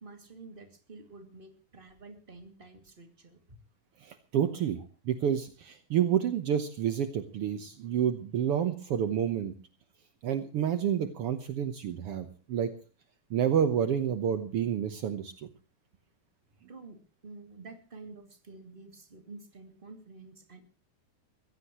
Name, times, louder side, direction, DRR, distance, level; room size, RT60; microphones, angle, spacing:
voice 1, 0.0-3.6 4.7-4.8 16.7-20.6, right 3 dB, 15° right, 6 dB, 2.4 m, -49 dB
voice 2, 4.0-9.5 10.2-12.7 13.3-15.5, right 9 dB, 75° right, 9 dB, 1.3 m, -29 dB
23.0 x 16.0 x 3.1 m, 0.38 s
omnidirectional pair, 4.1 m